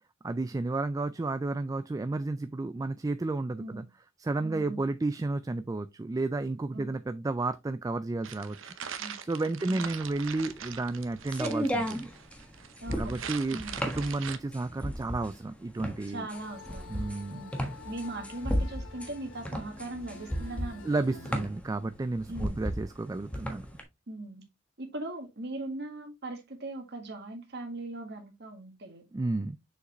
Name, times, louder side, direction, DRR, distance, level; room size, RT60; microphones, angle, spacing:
voice 1, 0.2-3.8 4.2-8.7 9.2-12.1 13.0-16.3 16.9-17.4 20.8-23.6 29.1-29.6, right 2 dB, 20° right, 0.3 m, -32 dB
voice 2, 4.4-4.9 6.7-6.9 9.0-9.2 9.6-9.9 12.8-13.2 13.5-13.9 16.1-21.4 22.3-22.7 24.1-24.4 24.8-29.0, right 2 dB, 60° right, 1.7 m, -40 dB
sound 1, 8.2-14.4, right 8 dB, 80° right, 0.8 m, -41 dB
sound 2, 9.9-23.8, equal, 5° left, 1.3 m, -35 dB
sound 3, 16.3-21.5, left 4 dB, 85° left, 1.4 m, -48 dB
6.6 x 5.0 x 3.0 m
head